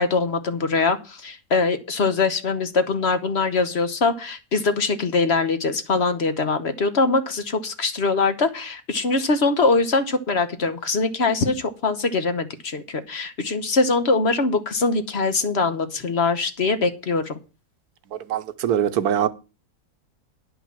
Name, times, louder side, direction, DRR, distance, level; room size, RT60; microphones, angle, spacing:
voice 1, 0.0-17.3, left 3 dB, 45° left, 1.2 m, -22 dB
voice 2, 18.1-19.3, right 9 dB, 80° right, 1.3 m, -23 dB
10.5 x 5.4 x 7.3 m
omnidirectional pair, 1.6 m